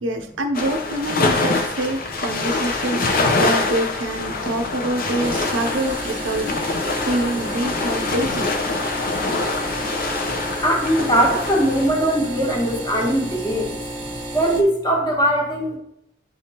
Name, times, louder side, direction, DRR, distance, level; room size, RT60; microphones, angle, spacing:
voice 1, 0.0-8.5, right 1 dB, 65° right, 5 dB, 0.6 m, -26 dB
sound 1, 0.5-11.9, left 3 dB, 45° left, 0.7 m, -24 dB
sound 2, 5.2-14.6, right 1 dB, 25° right, 0.9 m, -32 dB
voice 2, 10.6-15.8, right 1 dB, 20° left, -1 dB, 1.3 m, -21 dB
10.0 x 3.4 x 2.8 m, 0.79 s
head